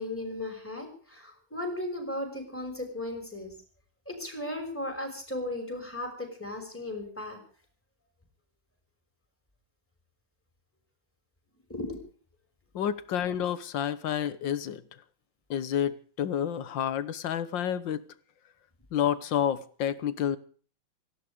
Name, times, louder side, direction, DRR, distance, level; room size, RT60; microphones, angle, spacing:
voice 1, 0.0-3.5 4.1-7.4 11.7-11.9, left 1 dB, 5° left, 5.8 m, -36 dB
voice 2, 12.8-14.8 15.5-18.0 18.9-20.4, left 9 dB, 60° left, 1.7 m, -29 dB
18.5 x 15.0 x 5.1 m
omnidirectional pair, 2.4 m